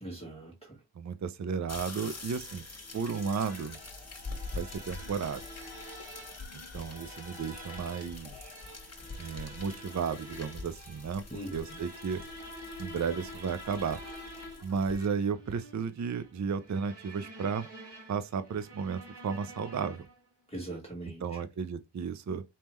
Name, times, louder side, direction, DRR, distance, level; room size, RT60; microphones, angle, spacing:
voice 1, 0.0-0.8 11.3-11.8 20.5-21.4, right 1 dB, 10° left, 1.3 m, -42 dB
voice 2, 1.0-2.7 2.9-3.8 4.5-5.4 6.5-8.5 9.2-11.2 11.5-12.2 12.8-14.0 14.6-17.7 18.1-20.0 21.2-22.4, right 6 dB, 40° right, 0.5 m, -33 dB
sound 1, 1.7-15.1, left 3 dB, 30° left, 1.3 m, -45 dB
sound 2, 2.3-20.3, equal, 55° right, 2.0 m, -48 dB
sound 3, 3.4-9.4, left 7 dB, 70° left, 0.8 m, -54 dB
4.3 x 3.6 x 3.0 m
wide cardioid pair, 65°, 49 cm